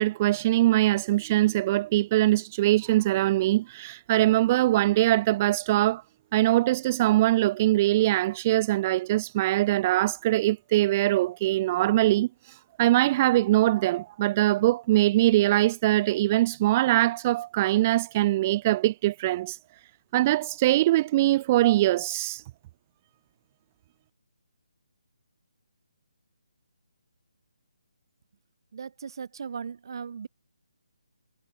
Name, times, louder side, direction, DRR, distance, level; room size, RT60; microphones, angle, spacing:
voice 1, 0.0-6.0 6.3-19.6 20.1-22.4, right 16 dB, 20° right, 3.4 m, -22 dB
voice 2, 28.7-30.3, right 6 dB, 45° right, 4.1 m, -37 dB
hypercardioid pair, 170°, 3 cm